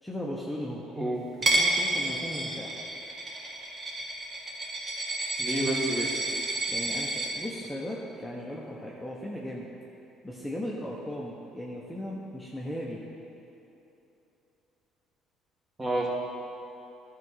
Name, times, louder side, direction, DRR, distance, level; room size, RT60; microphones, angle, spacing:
voice 1, 0.0-0.8 1.4-2.7 6.7-9.6 10.2-13.0, equal, 5° left, -5 dB, 1.1 m, -37 dB
Coin (dropping), 1.4-7.3, right 2 dB, 40° right, 1.5 m, -30 dB
voice 2, 5.4-6.1 15.8-16.1, right 1 dB, 20° right, -3 dB, 2.1 m, -29 dB
11.0 x 4.8 x 5.7 m, 2.9 s
supercardioid pair, 85°, 0 cm